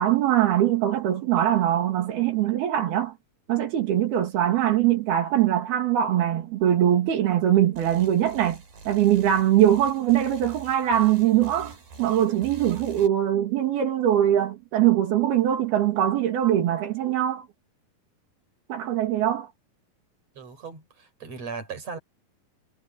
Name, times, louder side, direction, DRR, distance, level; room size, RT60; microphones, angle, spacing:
voice 1, 0.0-3.1 3.5-17.5 18.7-19.5, right 11 dB, 85° right, 4.2 m, -22 dB
sound 1, 7.7-13.1, right 4 dB, 65° right, 7.7 m, -45 dB
voice 2, 20.4-22.0, right 5 dB, 45° right, 6.3 m, -37 dB
omnidirectional pair, 4.3 m